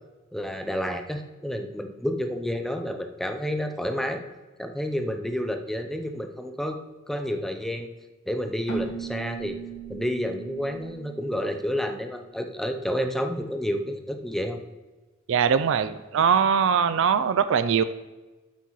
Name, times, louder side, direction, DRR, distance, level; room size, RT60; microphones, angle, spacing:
voice 1, 0.3-4.2 4.6-6.8 7.1-7.9 8.3-9.6 9.9-14.6, equal, ahead, 6 dB, 0.6 m, -30 dB
Keyboard (musical), 8.7-12.3, right 6 dB, 90° left, 1.5 m, -38 dB
voice 2, 15.3-17.8, right 7 dB, 65° right, 12 dB, 0.4 m, -21 dB
8.3 x 8.2 x 3.1 m, 1.2 s
head